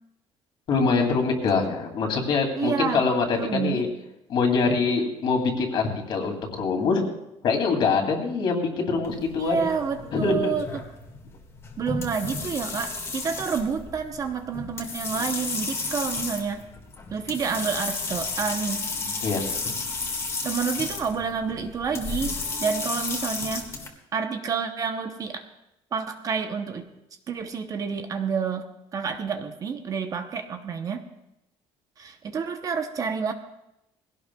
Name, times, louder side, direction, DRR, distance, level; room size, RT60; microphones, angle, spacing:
voice 1, 0.7-3.9 4.3-7.0 7.4-9.6 10.1-10.5 19.2-19.4, left 4 dB, 50° left, 3 dB, 2.5 m, -24 dB
voice 2, 2.6-3.0 3.3-3.8 9.4-10.8 11.8-16.6 17.1-18.8 20.4-23.7 24.1-25.4 25.9-26.9 27.3-31.0 32.0-33.3, right 6 dB, 30° right, 6 dB, 0.8 m, -29 dB
sound 1, 9.0-23.9, left 3 dB, 25° left, 1.8 m, -33 dB
21.0 x 17.0 x 2.3 m, 0.88 s
cardioid pair, 170°, 11 cm